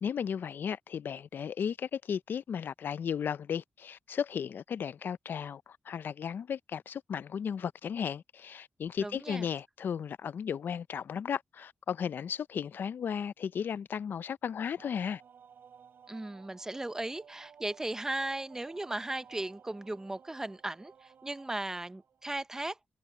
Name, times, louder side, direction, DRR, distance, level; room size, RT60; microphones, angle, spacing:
voice 1, 0.0-15.2, left 7 dB, 75° left, 0.4 m, -35 dB
voice 2, 9.0-9.4 16.1-22.8, right 2 dB, 15° right, 0.5 m, -37 dB
sound 1, 14.8-22.4, right 7 dB, 80° right, 7.4 m, -57 dB
wide cardioid pair, 145°, 3 cm